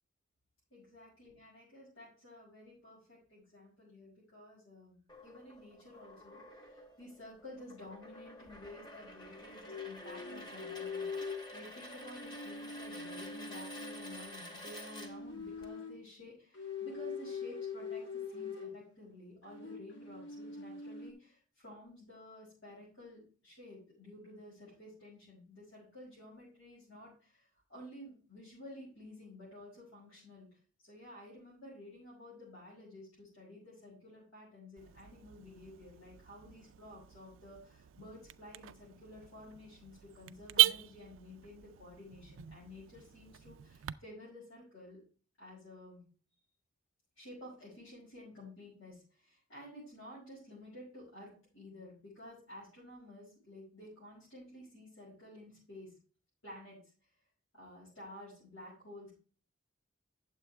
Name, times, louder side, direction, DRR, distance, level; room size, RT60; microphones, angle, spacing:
voice 1, 0.7-30.5 30.8-45.0 45.4-46.0 47.2-56.0 56.4-56.8 57.5-59.1, left 1 dB, 80° left, -7 dB, 5.5 m, -52 dB
sound 1, 5.1-15.7, equal, 20° left, 1.1 m, -50 dB
sound 2, 9.6-11.5 12.0-14.3 14.9-16.1 16.5-18.8 19.5-21.1, left 5 dB, 60° left, 1.7 m, -43 dB
Car / Alarm, 34.8-43.9, right 16 dB, 70° right, 0.3 m, -37 dB
9.3 x 7.4 x 3.4 m, 0.38 s
head